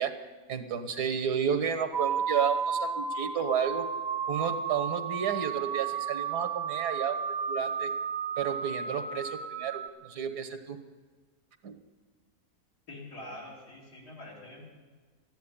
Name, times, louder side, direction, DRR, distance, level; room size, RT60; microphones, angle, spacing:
voice 1, 0.0-3.9 4.3-7.9 8.4-10.8 11.6-11.7, right 7 dB, 85° right, 9 dB, 1.9 m, -32 dB
sound 1, 1.9-9.9, right 6 dB, 50° right, 0.5 m, -33 dB
voice 2, 12.9-14.6, left 1 dB, 80° left, -3 dB, 4.4 m, -45 dB
14.0 x 10.5 x 9.9 m, 1.4 s
omnidirectional pair, 1.7 m